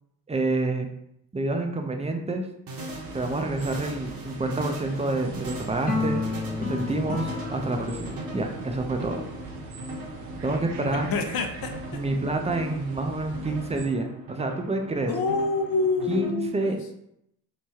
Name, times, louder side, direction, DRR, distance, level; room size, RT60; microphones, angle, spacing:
voice 1, 0.3-0.9 1.3-2.5 3.1-6.2 6.6-9.2 10.4-11.1 11.9-15.1 16.1-17.0, right 2 dB, 15° right, 3 dB, 0.6 m, -28 dB
sound 1, 2.7-16.3, right 1 dB, 45° right, 1.2 m, -40 dB
sound 2, 2.9-13.9, right 3 dB, 70° right, 0.9 m, -42 dB
sound 3, 5.9-10.3, left 4 dB, 20° left, 0.8 m, -33 dB
voice 2, 11.1-11.7 15.0-16.8, left 4 dB, 50° left, 5 dB, 0.8 m, -26 dB
4.7 x 2.2 x 2.8 m, 0.77 s
supercardioid pair, 60°, 47 cm